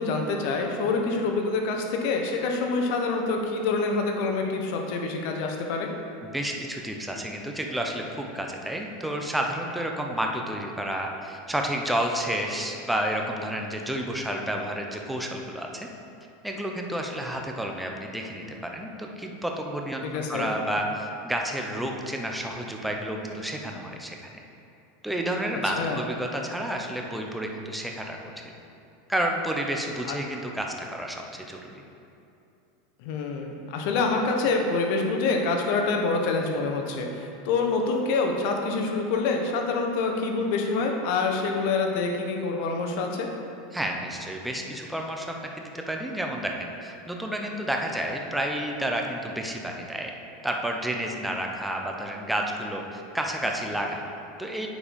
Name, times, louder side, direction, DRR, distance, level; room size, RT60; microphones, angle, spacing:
voice 1, 0.0-5.9 20.1-20.5 25.8-26.0 30.1-30.2 33.0-43.3, left 3 dB, 65° left, 2 dB, 1.1 m, -26 dB
voice 2, 6.3-15.9 16.4-24.3 25.0-28.2 29.1-31.7 43.7-50.1 50.4-54.7, right 1 dB, 5° right, 1 dB, 0.9 m, -30 dB
8.5 x 4.8 x 5.3 m, 2.7 s
supercardioid pair, 115°, 0 cm